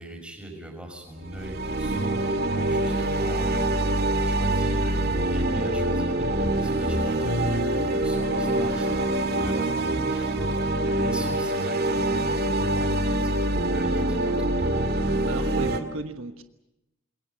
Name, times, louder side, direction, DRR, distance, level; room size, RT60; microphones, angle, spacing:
voice 1, 0.0-3.7 4.1-14.9, right 1 dB, 5° right, 2 dB, 6.0 m, -40 dB
sound 1, 1.2-15.8, right 1 dB, 50° right, 2.1 m, -25 dB
voice 2, 15.3-16.4, right 3 dB, 75° right, 8 dB, 1.3 m, -35 dB
27.0 x 22.0 x 7.1 m, 0.91 s
head